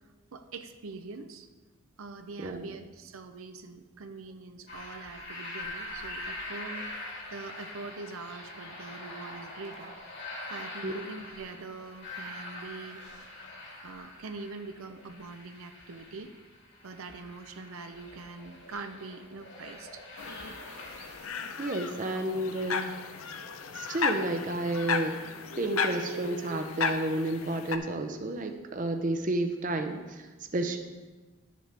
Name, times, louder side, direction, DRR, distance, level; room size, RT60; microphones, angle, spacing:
voice 1, 0.3-1.5 2.0-9.9 10.5-13.0 13.8-16.3 16.8-20.1, right 3 dB, 80° right, 8 dB, 0.6 m, -43 dB
sound 1, 4.7-21.2, left 1 dB, 55° left, 2.1 m, -43 dB
sound 2, 20.2-27.8, left 5 dB, 85° left, 0.6 m, -34 dB
voice 2, 21.6-22.9 23.7-25.2 25.5-30.3 30.5-30.8, right 1 dB, 40° right, 6 dB, 0.6 m, -31 dB
11.0 x 7.5 x 3.4 m, 1.3 s
head